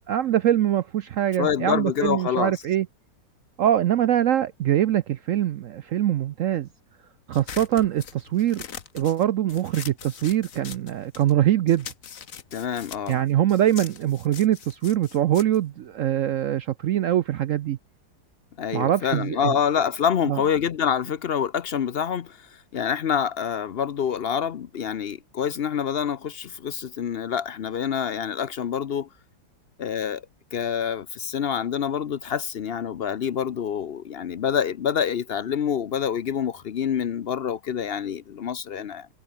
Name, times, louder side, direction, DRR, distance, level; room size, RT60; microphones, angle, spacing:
voice 1, 0.0-2.9 3.6-6.7 7.3-8.6 8.9-11.9 13.1-17.8 18.7-19.6 20.3-20.4, right 11 dB, 75° right, 0.7 m, -23 dB
voice 2, 1.4-2.5 12.5-13.2 18.6-29.1 29.8-30.2 30.5-39.1, left 8 dB, 70° left, 0.5 m, -26 dB
sound 1, 7.3-11.4 11.7-16.5, left 7 dB, 50° left, 1.5 m, -42 dB
omnidirectional pair, 2.0 m